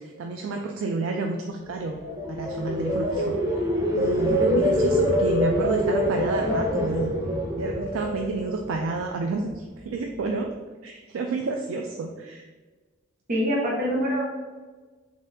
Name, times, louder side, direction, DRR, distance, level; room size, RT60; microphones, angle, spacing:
voice 1, 0.0-2.0 2.3-3.6 3.9-7.1 7.6-10.5 10.8-12.4, right 3 dB, 90° right, 2 dB, 0.4 m, -30 dB
sound 1, 1.8-9.0 9.4-9.7, equal, 15° right, 0.6 m, -25 dB
voice 2, 13.3-14.2, equal, 45° right, -4 dB, 0.9 m, -24 dB
4.0 x 3.5 x 2.6 m, 1.3 s
head